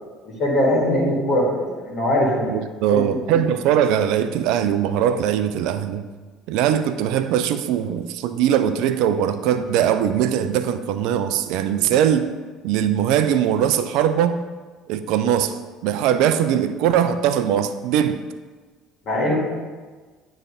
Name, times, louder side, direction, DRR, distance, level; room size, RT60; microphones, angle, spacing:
voice 1, 0.2-2.5 2.9-3.0 3.3-3.4 19.0-19.4, left 1 dB, 50° left, -4 dB, 1.8 m, -21 dB
voice 2, 2.5-6.0 6.5-12.3 12.6-14.4 14.9-18.2, right 9 dB, 60° right, 11 dB, 0.4 m, -21 dB
9.6 x 3.2 x 5.0 m, 1.4 s
figure-of-eight pair, 60°, 0 cm